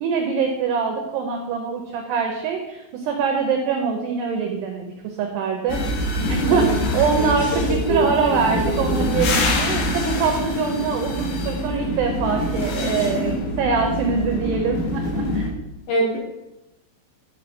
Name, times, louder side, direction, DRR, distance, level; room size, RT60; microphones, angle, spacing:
voice 1, 0.0-5.8 6.3-6.7 6.9-15.4, right 6 dB, 85° right, 3 dB, 2.3 m, -24 dB
sound 1, 5.7-15.5, left 1 dB, 85° left, 4.4 m, -24 dB
voice 2, 7.9-9.0 15.9-16.2, right 1 dB, 65° left, -3 dB, 2.5 m, -25 dB
11.0 x 5.5 x 4.3 m, 0.95 s
omnidirectional pair, 5.8 m